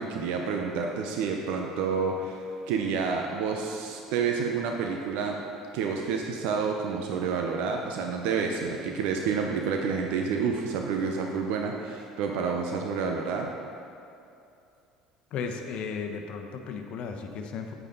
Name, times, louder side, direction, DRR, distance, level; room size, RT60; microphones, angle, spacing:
voice 1, 0.0-5.4 5.7-13.5, right 5 dB, 65° right, 2 dB, 0.8 m, -29 dB
voice 2, 15.3-17.7, left 5 dB, 55° left, 4 dB, 0.9 m, -35 dB
9.6 x 8.4 x 4.0 m, 2.6 s
hypercardioid pair, 65°, 2 cm